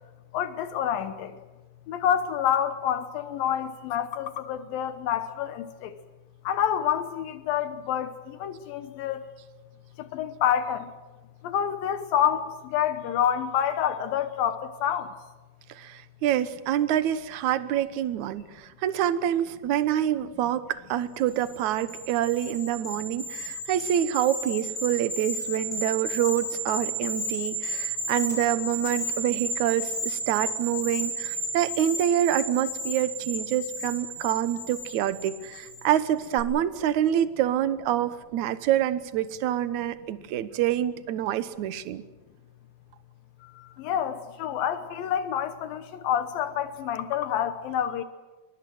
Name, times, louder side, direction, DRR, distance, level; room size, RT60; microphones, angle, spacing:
voice 1, 0.3-1.3 1.9-6.0 6.5-8.1 8.4-9.2 10.0-10.9 11.4-15.1 43.6-48.0, left 9 dB, 75° left, 10 dB, 2.7 m, -28 dB
voice 2, 15.7-42.0, right 11 dB, 65° right, 13 dB, 2.2 m, -26 dB
sound 1, 21.3-35.9 36.2-36.4, right 1 dB, 15° left, 8.2 m, -33 dB
25.5 x 23.0 x 7.8 m, 1.2 s
omnidirectional pair, 4.3 m